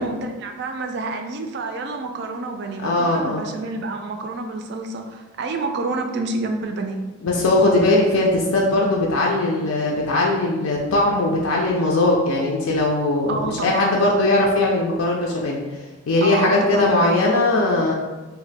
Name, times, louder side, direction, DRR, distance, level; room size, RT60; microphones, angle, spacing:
voice 1, 0.0-7.1 13.3-14.0 16.2-17.2, right 3 dB, 50° right, 5 dB, 0.3 m, -28 dB
voice 2, 2.8-3.5 7.2-15.6 16.1-17.9, left 2 dB, 85° left, -2 dB, 0.4 m, -19 dB
2.4 x 2.1 x 3.9 m, 1.2 s
head